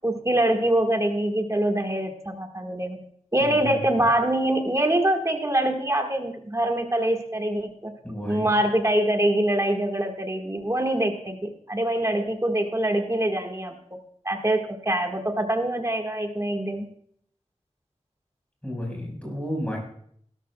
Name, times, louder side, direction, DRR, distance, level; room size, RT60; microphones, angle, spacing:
voice 1, 0.0-3.1 3.3-7.9 8.2-13.8 14.3-16.9, right 1 dB, 25° right, 3 dB, 1.7 m, -24 dB
voice 2, 3.4-3.8 8.0-8.5 18.6-19.8, equal, 10° left, -1 dB, 5.0 m, -32 dB
16.5 x 12.5 x 2.3 m, 0.64 s
wide cardioid pair, 70°, 12 cm